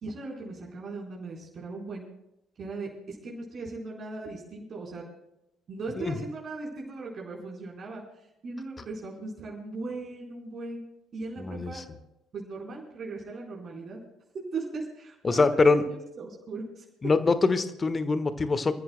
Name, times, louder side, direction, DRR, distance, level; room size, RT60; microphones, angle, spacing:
voice 1, 0.0-2.0 2.6-5.0 5.7-8.0 8.4-10.8 11.1-11.8 12.3-14.0 14.5-16.8, right 3 dB, 40° right, -3 dB, 4.2 m, -38 dB
voice 2, 11.4-11.8 15.2-15.8 17.0-18.7, left 3 dB, 25° left, 12 dB, 1.3 m, -24 dB
28.0 x 14.0 x 2.2 m, 0.85 s
figure-of-eight pair, 50°, 0 cm